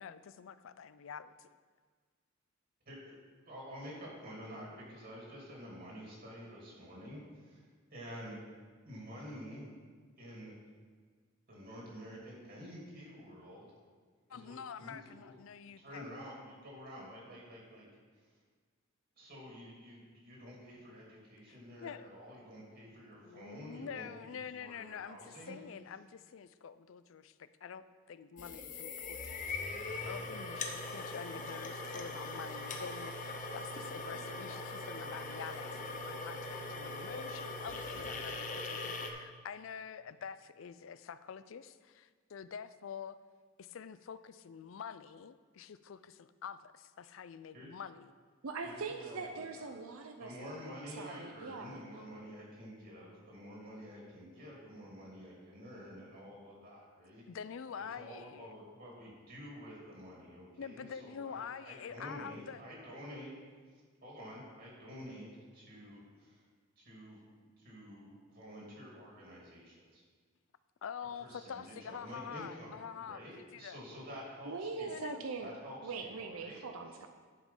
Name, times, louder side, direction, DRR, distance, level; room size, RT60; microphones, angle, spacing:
voice 1, 0.0-1.5 14.3-16.1 21.5-22.1 23.2-43.2 43.6-48.1 57.3-58.5 60.6-62.6 70.8-73.2 73.5-73.8 74.9-75.2, left 7 dB, 65° left, 14 dB, 0.4 m, -47 dB
voice 2, 2.9-3.2 3.4-8.4 8.8-9.7 10.2-10.5 11.5-13.7 14.3-15.3 15.8-17.9 19.2-25.5 47.5-47.7 48.6-49.7 50.2-57.2 57.8-63.3 64.0-65.3 65.5-66.4 66.8-67.2 67.6-70.0 71.2-75.0 75.4-76.6, equal, 50° right, -3 dB, 2.5 m, -49 dB
sound 1, 28.4-39.1, left 3 dB, 40° left, 0.7 m, -41 dB
voice 3, 48.4-50.3 50.9-51.8 74.5-75.5 75.8-77.1, right 4 dB, 90° right, 5 dB, 0.6 m, -42 dB
11.0 x 5.2 x 5.5 m, 1.6 s
head